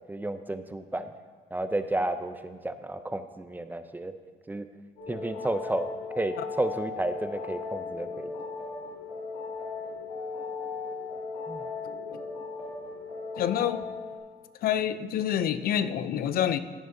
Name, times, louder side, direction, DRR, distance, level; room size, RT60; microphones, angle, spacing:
voice 1, 0.1-1.1 1.5-4.1 4.5-4.7 5.1-5.9 6.2-8.3 11.5-11.6, right 2 dB, 10° right, 10 dB, 0.5 m, -32 dB
sound 1, 5.0-14.2, left 4 dB, 90° left, 3.4 m, -37 dB
voice 2, 13.4-13.8 14.6-16.6, left 10 dB, 60° left, 12 dB, 0.5 m, -27 dB
15.0 x 9.2 x 2.7 m, 1.5 s
cardioid pair, 110°, 17 cm